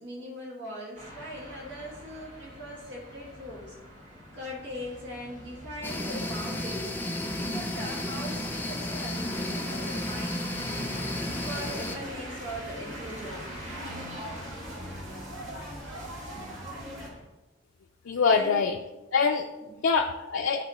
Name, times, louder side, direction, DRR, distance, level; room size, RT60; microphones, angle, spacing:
voice 1, 0.0-3.7 4.3-6.9 7.3-10.9 11.4-13.4 18.3-18.7 19.1-19.2 19.6-19.7, equal, 70° right, -4 dB, 1.9 m, -40 dB
sound 1, 0.9-17.2, equal, 40° right, 1.8 m, -44 dB
sound 2, 5.8-12.0, left 1 dB, 10° left, 0.6 m, -33 dB
sound 3, 11.3-17.1, equal, 85° right, 1.9 m, -42 dB
voice 2, 18.1-18.8 19.1-19.5 19.8-20.6, left 5 dB, 90° left, 3 dB, 0.5 m, -24 dB
11.5 x 4.1 x 3.1 m, 1.0 s
head